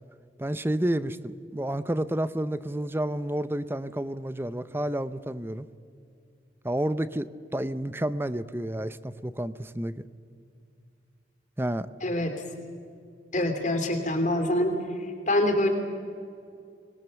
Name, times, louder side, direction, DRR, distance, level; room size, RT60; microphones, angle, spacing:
voice 1, 0.4-5.7 6.6-10.0 11.6-11.9, right 1 dB, 15° right, 14 dB, 0.6 m, -30 dB
voice 2, 12.0-12.3 13.3-14.8 15.3-15.7, left 1 dB, 45° left, 5 dB, 3.2 m, -25 dB
25.0 x 20.5 x 7.0 m, 2.4 s
head